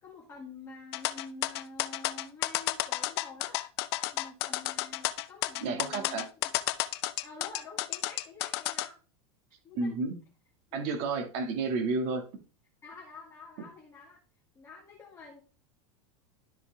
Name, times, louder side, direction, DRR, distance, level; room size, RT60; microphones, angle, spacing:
voice 1, 0.0-3.6 4.1-6.5 7.2-9.0 9.6-10.0 10.7-10.8 12.8-14.2 14.5-15.4, left 3 dB, 15° left, -3 dB, 2.1 m, -48 dB
sound 1, 0.9-8.9, left 17 dB, 55° left, 0.6 m, -31 dB
voice 2, 5.6-6.2 9.7-10.1 10.7-12.2, right 3 dB, 45° right, 5 dB, 2.1 m, -31 dB
12.5 x 4.8 x 3.5 m, 0.36 s
supercardioid pair, 165°, 16 cm